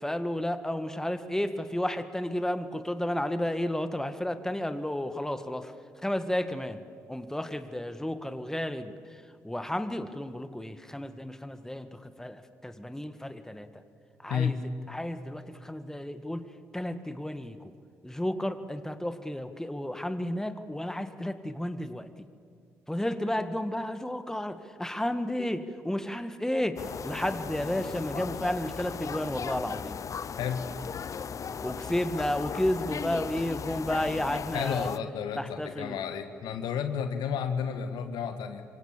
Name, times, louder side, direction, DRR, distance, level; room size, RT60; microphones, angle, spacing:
voice 1, 0.0-5.7 6.0-6.8 7.1-8.9 9.4-13.7 14.2-14.6 14.9-17.7 18.0-22.1 22.9-30.0 31.6-34.9 35.4-36.0, left 1 dB, 5° left, 10 dB, 1.8 m, -32 dB
voice 2, 14.3-14.6 30.4-30.6 34.5-38.6, left 7 dB, 65° left, 9 dB, 1.6 m, -32 dB
sound 1, 26.8-35.0, left 7 dB, 45° left, 0.7 m, -37 dB
28.0 x 25.0 x 7.5 m, 2.2 s
figure-of-eight pair, 40°, 8 cm